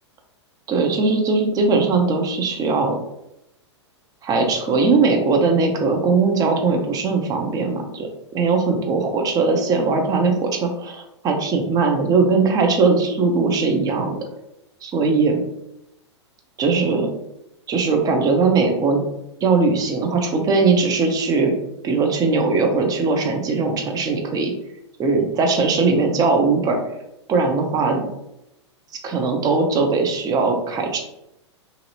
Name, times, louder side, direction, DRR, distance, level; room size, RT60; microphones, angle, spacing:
voice 1, 0.7-3.0 4.2-14.2 14.8-15.4 16.6-17.1 17.7-19.0 19.4-21.5 21.8-24.5 25.0-26.8 27.3-28.0 29.0-31.0, right 4 dB, 25° right, 3 dB, 0.6 m, -20 dB
3.0 x 2.7 x 2.7 m, 0.84 s
hypercardioid pair, 105°, 15 cm